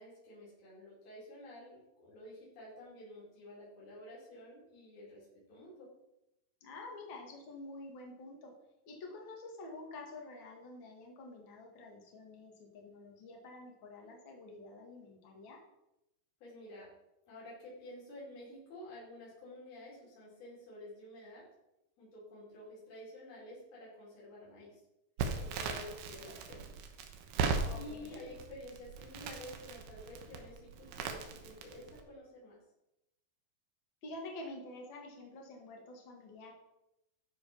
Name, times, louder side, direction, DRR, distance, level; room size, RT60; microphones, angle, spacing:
voice 1, 0.0-5.9 16.4-16.9 17.3-21.4 22.0-24.7 25.4-26.8 27.7-32.6, left 1 dB, 70° left, -7 dB, 5.7 m, -50 dB
voice 2, 6.6-8.5 8.9-15.6 27.7-28.2 34.0-36.5, left 2 dB, 40° left, 0 dB, 2.1 m, -48 dB
Crackle, 25.2-32.0, right 5 dB, 85° right, 3.0 m, -38 dB
13.0 x 5.0 x 5.6 m, 0.89 s
omnidirectional pair, 4.5 m